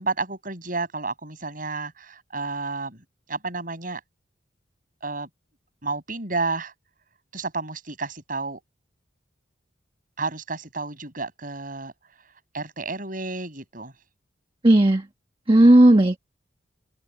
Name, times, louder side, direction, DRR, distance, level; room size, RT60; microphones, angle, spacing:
voice 1, 0.0-4.0 5.0-5.3 5.8-6.7 7.3-8.6 10.2-11.9 12.5-13.9, right 3 dB, 45° right, 7.4 m, -31 dB
voice 2, 14.6-15.0 15.5-16.2, right 1 dB, 30° right, 1.4 m, -14 dB
head